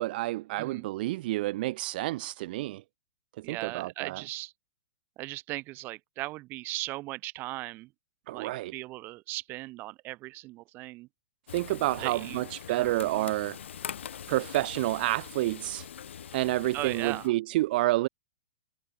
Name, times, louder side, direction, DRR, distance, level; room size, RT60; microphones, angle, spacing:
voice 1, 0.0-2.8 3.4-4.2 8.3-8.7 11.5-13.6 14.3-15.9 16.3-18.1, right 18 dB, 50° right, 0.5 m, -29 dB
voice 2, 3.4-4.5 5.2-7.9 8.3-11.1 12.0-12.4 12.7-13.3 16.7-17.3, right 19 dB, 30° right, 1.0 m, -38 dB
Frying (food), 11.5-17.3, left 8 dB, 80° left, 1.8 m, -43 dB
hypercardioid pair, 135°, 6 cm